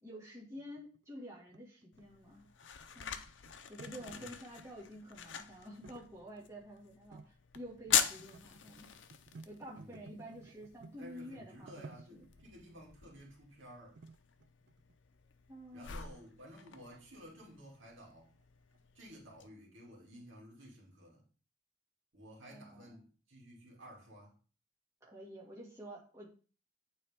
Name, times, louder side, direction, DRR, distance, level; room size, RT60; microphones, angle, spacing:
voice 1, 0.0-2.5 2.9-3.2 3.7-8.9 9.4-12.3 15.5-16.0 22.5-23.0 25.0-26.3, equal, 15° right, 2.2 m, -50 dB
sound 1, 0.6-4.7 4.9-5.5 5.8-6.8 7.1-7.3 7.6-11.0 11.4-12.5 13.1-13.3 13.9-15.2 15.7-15.8 16.4-17.0 17.9-18.1 18.4-18.5 18.7-18.8 19.3-19.4, right 4 dB, 60° right, 0.4 m, -56 dB
sound 2, 1.9-19.5, left 9 dB, 75° left, 0.6 m, -42 dB
voice 2, 9.7-10.1 11.0-14.0 15.7-18.3 18.9-21.3 22.1-24.3, equal, 85° right, 2.5 m, -54 dB
9.0 x 4.0 x 3.6 m
head